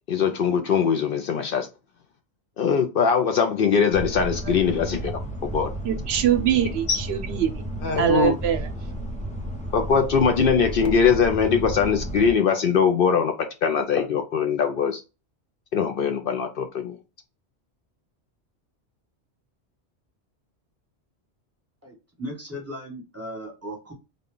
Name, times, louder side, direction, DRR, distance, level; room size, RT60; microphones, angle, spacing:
voice 1, 0.1-1.7 2.6-5.7 6.9-7.0 7.8-8.3 9.7-13.3 13.6-15.0 15.7-17.0, left 6 dB, 60° left, 0.7 m, -22 dB
sound 1, 3.9-12.3, right 1 dB, 10° left, 0.7 m, -33 dB
voice 2, 5.8-7.6 8.0-8.7, right 10 dB, 70° right, 0.8 m, -23 dB
voice 3, 21.8-23.9, equal, 15° right, 1.2 m, -37 dB
3.7 x 2.2 x 3.7 m
omnidirectional pair, 1.1 m